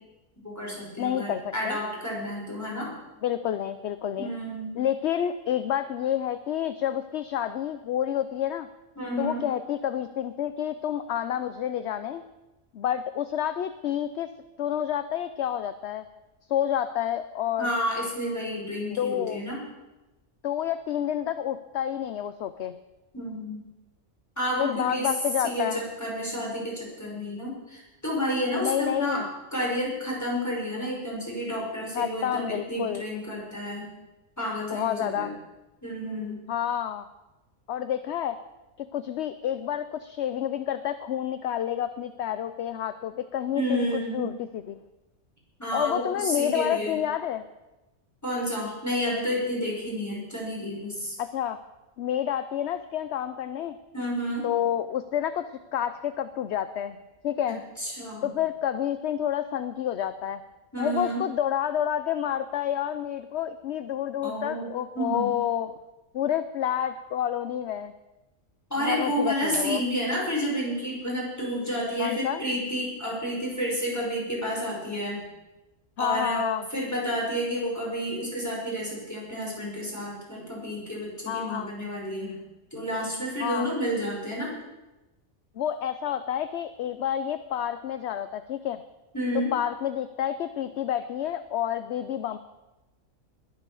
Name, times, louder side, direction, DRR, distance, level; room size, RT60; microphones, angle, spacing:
voice 1, 0.4-2.9 4.2-4.7 9.0-9.4 17.6-19.6 23.1-23.6 24.4-25.1 25.4-29.2 29.5-33.9 34.4-35.3 35.8-36.4 43.5-44.3 45.6-47.0 48.2-51.1 53.9-54.5 57.8-58.3 60.7-61.2 64.2-64.7 65.0-65.3 68.7-75.2 76.0-82.4 82.7-84.5 89.1-89.5, equal, 10° left, -4 dB, 5.6 m, -30 dB
voice 2, 1.0-1.8 3.2-4.3 4.8-8.7 9.2-12.2 12.7-14.3 14.6-16.1 16.5-17.7 18.9-19.4 20.4-22.8 24.6-25.8 28.6-29.3 31.9-33.0 34.7-35.3 36.5-37.1 37.7-38.4 38.8-44.8 45.7-47.4 51.2-51.6 52.0-53.8 54.4-55.4 55.7-57.0 57.2-57.6 58.2-60.4 60.8-65.7 66.1-67.9 68.8-69.8 72.0-72.4 76.0-76.7 81.3-81.7 83.4-83.7 85.6-88.8 89.3-92.4, left 10 dB, 60° left, 12 dB, 0.8 m, -29 dB
20.5 x 8.2 x 7.1 m, 1.0 s
omnidirectional pair, 1.4 m